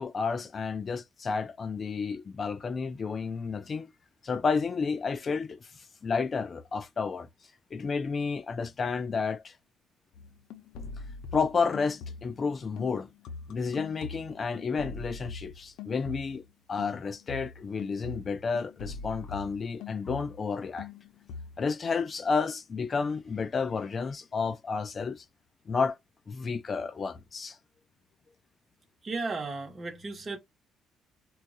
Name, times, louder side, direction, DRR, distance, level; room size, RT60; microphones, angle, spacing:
voice 1, 0.0-3.9 4.2-5.6 6.0-7.3 7.7-9.5 11.3-13.1 13.5-16.4 16.7-20.9 21.6-25.2 25.7-26.0 26.3-27.6, left 5 dB, 35° left, 0.5 m, -31 dB
sound 1, 10.1-12.5 12.8-16.5 16.8-20.5 20.8-21.6, left 4 dB, 85° left, 0.6 m, -43 dB
voice 2, 29.0-30.4, right 3 dB, 25° right, 1.1 m, -34 dB
4.4 x 2.3 x 2.7 m
cardioid pair, 130°, 0 cm